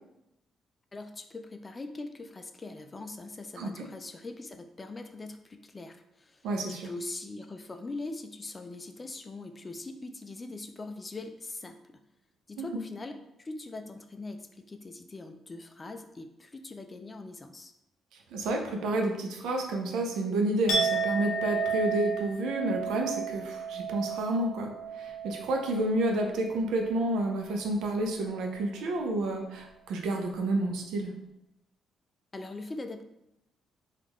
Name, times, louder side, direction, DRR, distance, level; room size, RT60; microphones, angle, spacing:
voice 1, 0.9-6.5 6.8-12.0 12.5-17.7 32.3-33.0, left 2 dB, 25° left, 7 dB, 0.3 m, -42 dB
voice 2, 6.4-6.9 12.6-12.7 18.1-31.1, right 1 dB, 85° right, 2 dB, 0.6 m, -30 dB
Chink clink, 20.7-26.6 26.9-27.3, right 4 dB, 75° left, 0.7 m, -33 dB
3.5 x 2.4 x 3.1 m, 0.89 s
cardioid pair, 90°, 0 cm